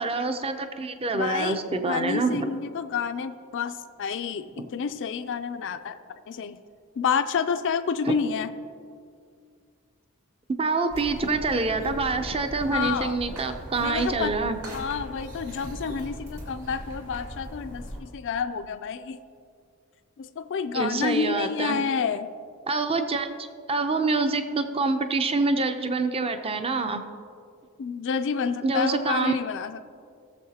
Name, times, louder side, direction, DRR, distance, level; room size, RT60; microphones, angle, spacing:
voice 1, 0.0-2.5 8.0-8.1 10.6-14.6 20.7-21.8 22.7-23.3 23.7-27.0 28.6-29.4, right 3 dB, 25° right, 8 dB, 0.6 m, -26 dB
voice 2, 1.1-1.6 1.9-6.0 6.3-6.6 7.0-8.5 12.7-13.2 13.8-14.3 14.7-19.2 20.2-22.3 27.8-29.8, left 6 dB, 55° left, 9 dB, 0.4 m, -29 dB
sound 1, 10.9-18.0, equal, 75° right, 2.6 m, -39 dB
18.5 x 7.1 x 2.8 m, 2.3 s
head